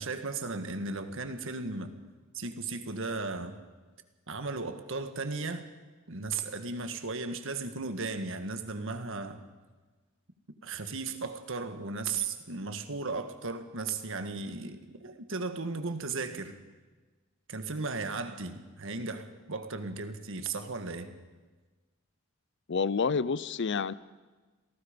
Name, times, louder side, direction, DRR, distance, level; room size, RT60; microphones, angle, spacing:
voice 1, 0.0-2.0 2.3-3.6 4.3-5.6 6.1-9.4 10.6-16.6 17.5-21.1, right 3 dB, 65° right, 8 dB, 1.6 m, -36 dB
voice 2, 22.7-23.9, left 5 dB, 55° left, 18 dB, 0.6 m, -28 dB
27.5 x 18.5 x 5.2 m, 1.3 s
head